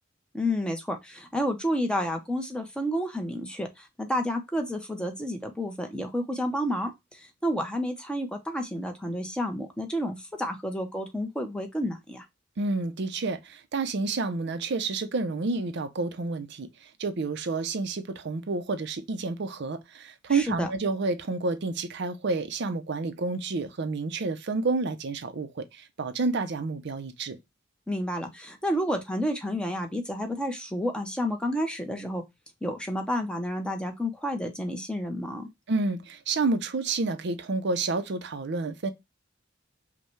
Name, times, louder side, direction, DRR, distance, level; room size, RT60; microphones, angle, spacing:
voice 1, 0.3-12.2 20.3-20.7 27.9-32.2 32.6-35.5, equal, 5° left, 0.7 m, -30 dB
voice 2, 12.6-16.7 17.0-27.4 35.7-38.9, right 3 dB, 60° right, 0.5 m, -29 dB
5.4 x 2.2 x 3.0 m
head